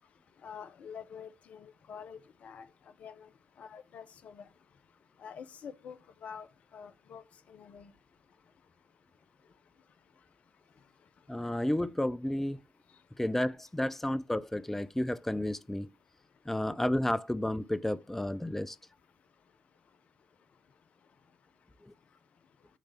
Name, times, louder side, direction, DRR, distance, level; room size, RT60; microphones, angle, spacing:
voice 1, 0.4-2.7 3.0-3.3 3.6-4.4 5.2-6.5 6.7-7.2 7.5-7.9, left 7 dB, 55° left, 0.7 m, -47 dB
voice 2, 11.3-12.6 13.2-15.9 16.4-18.8 21.8-21.9, left 1 dB, 10° left, 0.5 m, -31 dB
9.1 x 3.3 x 5.7 m
figure-of-eight pair, 40°, 3 cm